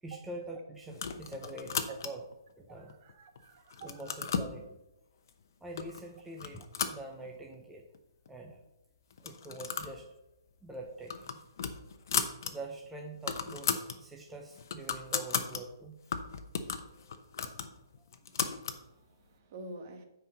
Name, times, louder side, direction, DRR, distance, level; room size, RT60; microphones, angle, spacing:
voice 1, 0.0-1.7 2.0-2.2 2.6-3.0 3.8-4.8 5.6-7.8 8.3-8.6 9.2-10.1 10.6-11.4 11.7-11.8 12.4-16.0 17.0-17.2, right 2 dB, 5° right, 0.6 m, -45 dB
sound 1, 0.9-2.3 2.9-3.4 3.7-4.5 5.3-5.4 5.8-6.0 6.4-7.6 7.9-8.0 8.3-8.4 9.1-10.0 10.3-10.5 10.9-12.5 12.9-13.0 13.1-14.0 14.4-15.6 16.1-18.8, left 6 dB, 55° left, 0.8 m, -35 dB
voice 2, 2.8-4.2 18.7-20.0, right 3 dB, 35° right, 1.2 m, -48 dB
9.3 x 4.6 x 5.2 m
hypercardioid pair, 160°, 2 cm